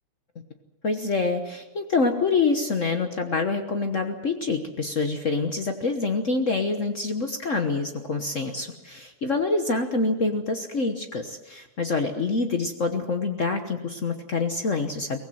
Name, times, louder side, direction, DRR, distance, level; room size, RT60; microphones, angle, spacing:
voice 1, 0.8-15.2, left 3 dB, 85° left, 6 dB, 0.6 m, -26 dB
23.5 x 19.0 x 7.8 m, 1.1 s
omnidirectional pair, 3.3 m